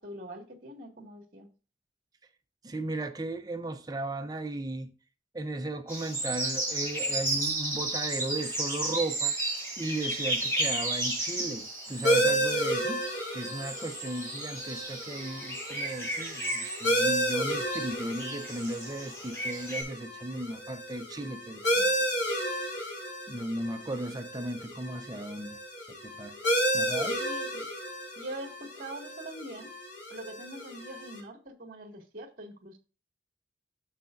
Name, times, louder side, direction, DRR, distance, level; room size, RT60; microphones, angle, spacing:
voice 1, 0.0-1.5 27.2-27.7 28.2-29.7 30.1-32.7, right 1 dB, 50° right, 1.9 m, -43 dB
voice 2, 2.6-4.9 5.3-9.3 9.8-13.0 13.3-22.0 22.4-22.8 23.3-25.6 26.0-26.4 26.7-27.2, right 2 dB, 20° right, 0.6 m, -36 dB
sound 1, 5.9-19.8, right 2 dB, 15° left, 4.5 m, -34 dB
sound 2, 12.0-31.2, equal, 70° left, 3.6 m, -32 dB
11.0 x 6.8 x 2.5 m
head